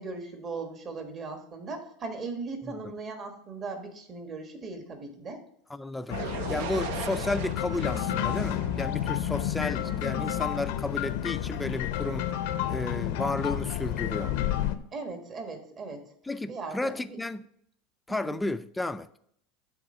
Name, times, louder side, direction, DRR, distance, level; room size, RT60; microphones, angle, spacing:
voice 1, 0.0-5.4 14.9-16.0 16.5-17.2 18.2-18.4, right 3 dB, 35° right, 1.3 m, -38 dB
voice 2, 2.6-2.9 5.7-6.2 6.5-12.3 12.7-14.3 16.2-17.5 18.1-19.1, left 2 dB, 10° left, 0.3 m, -33 dB
sound 1, 6.1-14.8, left 11 dB, 70° left, 0.6 m, -30 dB
sound 2, 6.1-10.0, right 8 dB, 70° right, 0.6 m, -39 dB
7.9 x 3.6 x 6.5 m
supercardioid pair, 125°, 0 cm